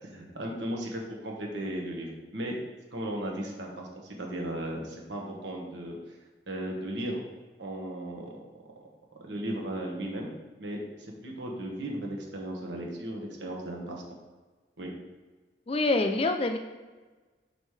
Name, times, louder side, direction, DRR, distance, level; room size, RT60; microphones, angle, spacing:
voice 1, 0.0-2.5 2.9-6.2 6.5-7.2 7.6-8.3 9.2-10.3 10.6-14.0 14.8-14.9, right 1 dB, 90° right, 0 dB, 1.4 m, -36 dB
voice 2, 15.7-16.6, left 2 dB, 30° left, 6 dB, 0.4 m, -25 dB
6.1 x 5.5 x 3.2 m, 1.3 s
head